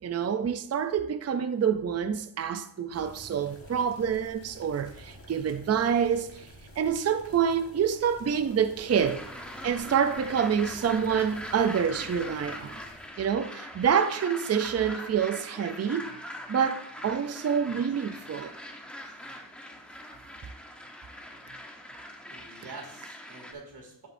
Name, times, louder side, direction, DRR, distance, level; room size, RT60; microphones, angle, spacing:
voice 1, 0.0-6.4 6.8-9.3 9.6-12.7 13.2-16.1 16.5-18.5, right 7 dB, 35° right, 0.5 m, -27 dB
sound 1, 2.9-13.1, left 1 dB, 30° left, 1.5 m, -51 dB
sound 2, 8.9-23.5, equal, ahead, 0.9 m, -42 dB
voice 2, 22.2-24.1, right 3 dB, 65° right, 2.6 m, -46 dB
10.5 x 7.9 x 2.6 m
wide cardioid pair, 155°, 44 cm